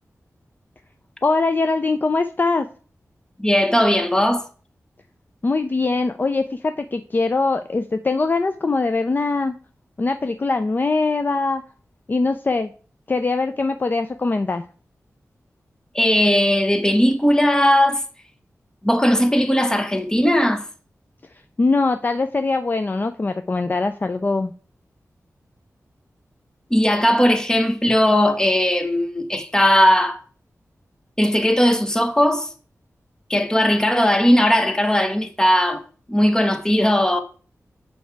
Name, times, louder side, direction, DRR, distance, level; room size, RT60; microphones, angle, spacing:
voice 1, 1.2-2.7 5.4-9.5 10.0-11.6 12.1-12.7 13.1-14.6 21.6-24.5, left 3 dB, 35° left, 0.4 m, -22 dB
voice 2, 3.4-4.4 15.9-18.0 18.8-20.7 26.7-30.2 31.2-32.5 33.3-35.8 36.1-37.2, equal, 10° left, 0.9 m, -18 dB
6.4 x 4.7 x 4.6 m
wide cardioid pair, 85°, 6 cm